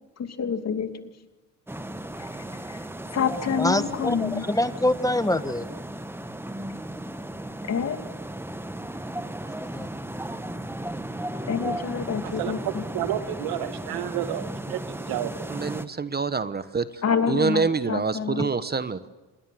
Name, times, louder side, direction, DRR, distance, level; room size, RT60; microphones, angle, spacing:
voice 1, 0.2-0.9 2.2-2.9 3.1-4.4 7.6-8.0 11.4-12.8 17.0-18.5, left 6 dB, 45° left, 7 dB, 2.7 m, -28 dB
sound 1, 1.7-15.9, right 1 dB, 5° right, 1.6 m, -35 dB
voice 2, 3.6-5.7 9.6-9.9, left 1 dB, 10° left, 11 dB, 1.4 m, -25 dB
voice 3, 12.2-15.5, right 11 dB, 80° right, 8 dB, 2.4 m, -31 dB
voice 4, 15.5-16.9 17.3-19.1, right 5 dB, 25° right, 12 dB, 1.3 m, -26 dB
27.0 x 21.5 x 7.8 m, 1.2 s
supercardioid pair, 85°, 36 cm